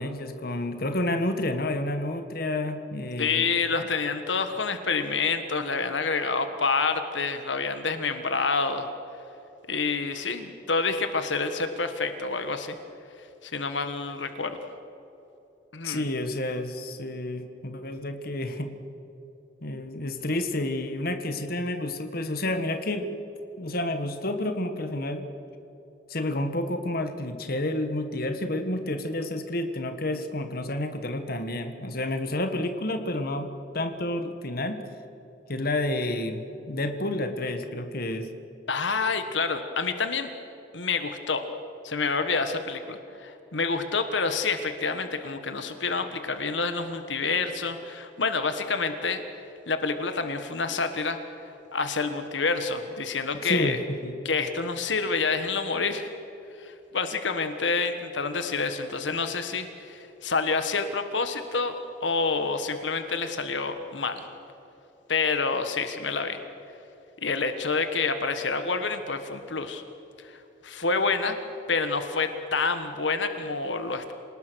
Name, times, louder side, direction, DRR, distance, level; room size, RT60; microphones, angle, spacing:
voice 1, 0.0-3.4 15.8-18.7 19.6-23.1 23.6-25.2 26.1-34.8 35.5-38.3 53.4-53.8 54.0-54.2, left 1 dB, 55° left, 7 dB, 1.6 m, -30 dB
voice 2, 3.2-8.9 9.7-12.8 13.4-14.6 15.7-16.1 38.7-40.3 40.7-41.4 41.8-49.2 49.7-51.2 51.7-53.8 54.2-56.1 56.6-64.2 65.1-66.4 67.2-69.8 70.2-71.4 71.7-74.1, left 4 dB, 80° left, 8 dB, 1.5 m, -28 dB
27.0 x 19.0 x 6.4 m, 3.0 s
head